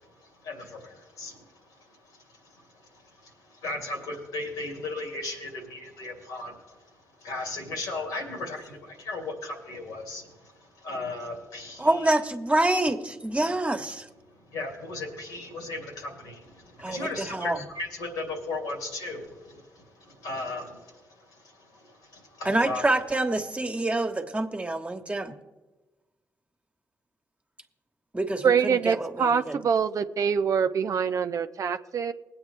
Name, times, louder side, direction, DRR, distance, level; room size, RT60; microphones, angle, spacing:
voice 1, 0.0-12.1 13.4-13.5 14.5-22.8, left 2 dB, 90° left, 1 dB, 2.8 m, -37 dB
voice 2, 11.8-14.1 16.8-17.6 22.4-25.3 28.1-29.6, right 2 dB, 20° right, 5 dB, 1.3 m, -27 dB
voice 3, 28.4-32.1, right 6 dB, 60° right, 9 dB, 0.6 m, -25 dB
20.0 x 8.6 x 3.3 m, 1.2 s
supercardioid pair, 50°, 6 cm